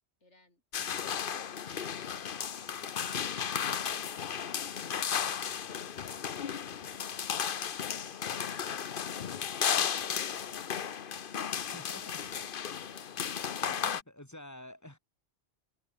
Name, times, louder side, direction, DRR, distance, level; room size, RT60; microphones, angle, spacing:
voice 1, 0.2-0.6 12.8-13.2, left 2 dB, 90° left, 5.9 m, -68 dB
sound 1, 0.7-14.0, left 8 dB, 55° left, 1.0 m, -34 dB
voice 2, 11.5-12.3 13.6-15.0, left 1 dB, 15° left, 2.5 m, -49 dB
omnidirectional pair, 1.2 m